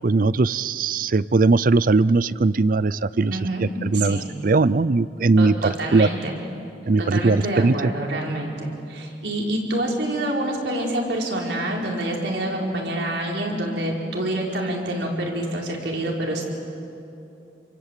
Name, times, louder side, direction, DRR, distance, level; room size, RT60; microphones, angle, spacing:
voice 1, 0.0-3.4 3.8-6.1 6.9-7.9, right 3 dB, 50° right, 19 dB, 0.5 m, -19 dB
voice 2, 3.3-3.7 3.9-4.3 5.4-6.4 7.0-16.4, right 1 dB, 80° right, -1 dB, 4.8 m, -27 dB
28.5 x 23.5 x 8.4 m, 2.7 s
head